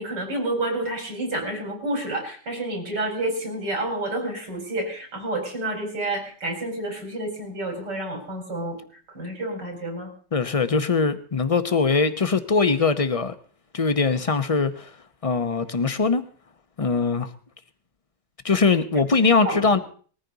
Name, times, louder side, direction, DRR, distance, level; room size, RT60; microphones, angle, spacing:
voice 1, 0.0-8.8 9.1-10.1 19.4-19.6, right 1 dB, 85° right, 5.1 m, -29 dB
voice 2, 10.3-13.3 13.7-15.0 15.2-16.2 16.8-17.3 18.4-19.8, left 4 dB, 35° left, 0.5 m, -21 dB
20.5 x 14.0 x 4.0 m
omnidirectional pair, 1.8 m